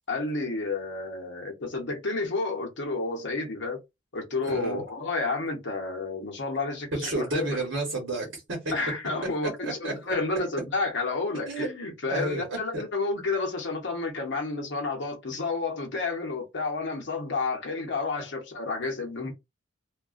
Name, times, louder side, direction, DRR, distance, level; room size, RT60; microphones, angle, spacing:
voice 1, 0.1-3.8 4.1-7.6 8.7-19.3, left 3 dB, 65° left, 0.8 m, -30 dB
voice 2, 4.4-4.8 6.9-8.7 9.6-10.2 11.5-11.7 12.1-12.8 18.2-18.3, right 2 dB, 75° right, 1.0 m, -31 dB
2.3 x 2.2 x 2.4 m
head